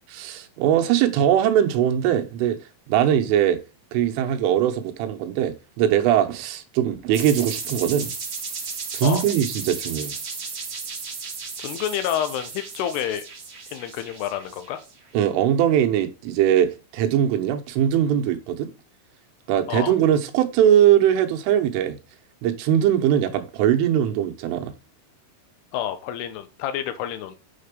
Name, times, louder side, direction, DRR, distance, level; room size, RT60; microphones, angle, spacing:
voice 1, 0.1-2.6 2.9-3.6 3.9-8.1 8.9-10.1 15.2-18.7 19.5-22.0 22.4-24.7, right 10 dB, 85° right, 3.4 m, -21 dB
sound 1, 7.1-14.9, right 5 dB, 40° right, 2.3 m, -34 dB
voice 2, 11.6-13.2 13.7-14.8 19.7-19.9 25.7-27.4, left 10 dB, 90° left, 2.3 m, -28 dB
7.6 x 6.7 x 5.2 m
omnidirectional pair, 5.7 m